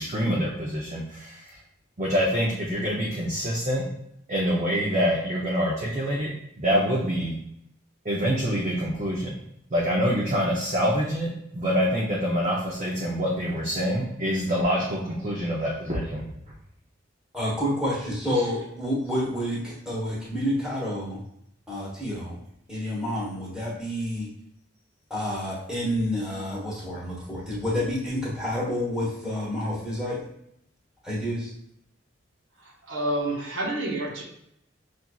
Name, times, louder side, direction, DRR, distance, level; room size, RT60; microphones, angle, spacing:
voice 1, 0.0-1.4 2.0-3.8 4.3-6.3 6.6-7.3 8.0-9.4 9.7-16.2, equal, 35° right, -4 dB, 0.6 m, -26 dB
voice 2, 17.3-21.2 21.7-22.4 22.7-24.3 25.1-30.2 31.0-31.5, equal, 5° right, -7 dB, 1.1 m, -29 dB
voice 3, 32.6-34.2, right 1 dB, 75° right, -1 dB, 0.8 m, -29 dB
5.7 x 2.6 x 2.3 m, 0.75 s
head